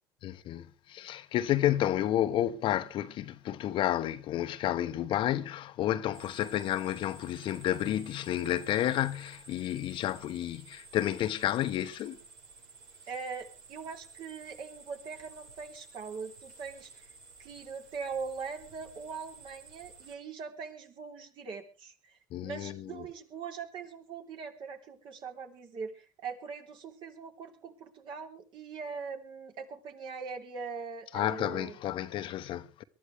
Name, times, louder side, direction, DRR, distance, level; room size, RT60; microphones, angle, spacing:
voice 1, 0.2-12.2 22.3-23.1 31.1-32.8, left 12 dB, 55° left, 1.0 m, -31 dB
sound 1, 6.1-20.1, right 3 dB, 75° right, 7.3 m, -54 dB
voice 2, 13.1-17.1 17.4-31.8, right 5 dB, 55° right, 3.6 m, -41 dB
23.0 x 13.0 x 3.5 m
supercardioid pair, 85°, 10 cm